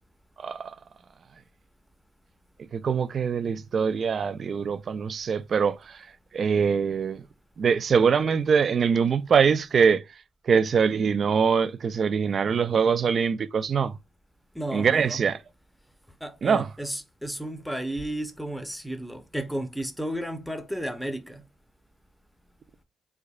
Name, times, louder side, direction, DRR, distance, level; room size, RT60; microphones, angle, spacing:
voice 1, 0.4-0.7 2.7-5.9 6.3-7.2 7.6-10.0 10.5-14.0 14.7-15.4 16.4-16.7, right 6 dB, 50° right, 0.3 m, -23 dB
voice 2, 14.5-15.2 16.2-21.4, right 1 dB, ahead, 0.6 m, -33 dB
3.6 x 3.3 x 2.3 m
cardioid pair, 90°, 0 cm